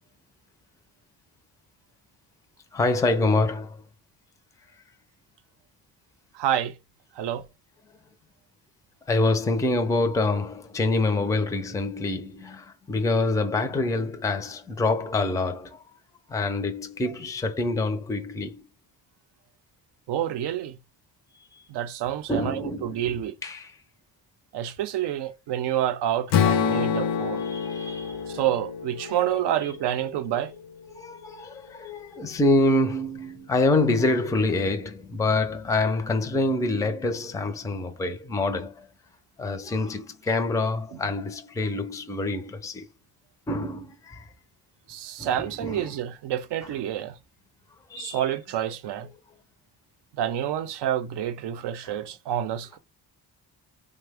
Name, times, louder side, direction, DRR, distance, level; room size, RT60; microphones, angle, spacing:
voice 1, 2.7-3.8 9.1-15.8 16.3-18.6 21.3-21.7 22.3-23.8 27.1-28.4 29.0-29.2 29.6-29.7 30.3-30.5 30.9-38.9 39.4-42.9 43.5-44.3 45.2-46.0 46.6-46.7 47.9-48.2 51.8-51.9, left 2 dB, 10° left, 0.4 m, -26 dB
voice 2, 6.3-6.7 7.2-7.4 20.1-20.8 21.7-23.3 24.5-27.4 28.3-30.5 44.9-47.2 48.0-49.1 50.2-52.8, right 11 dB, 75° right, 0.5 m, -28 dB
Strum, 26.3-30.5, left 7 dB, 75° left, 0.6 m, -27 dB
3.3 x 2.1 x 3.4 m
cardioid pair, 95°, 42 cm